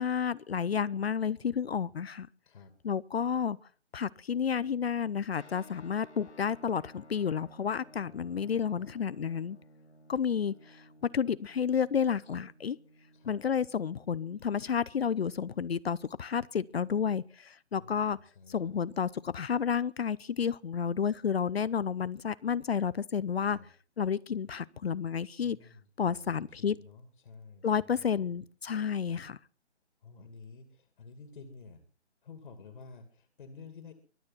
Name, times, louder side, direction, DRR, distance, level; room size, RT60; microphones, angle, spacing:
voice 1, 0.0-2.3 2.8-3.6 3.9-9.6 10.1-10.8 11.1-12.8 13.3-18.2 18.5-23.6 24.0-25.6 26.0-26.8 27.6-29.4, left 7 dB, 60° left, 0.7 m, -31 dB
sound 1, 5.3-16.5, left 1 dB, 80° left, 3.1 m, -57 dB
voice 2, 8.1-9.0 13.1-13.4 17.7-18.7 23.5-23.7 25.4-28.4 29.1-29.3 30.0-31.8 32.2-33.9, left 4 dB, 45° left, 2.6 m, -52 dB
23.0 x 9.5 x 5.9 m
figure-of-eight pair, 150°, 34 cm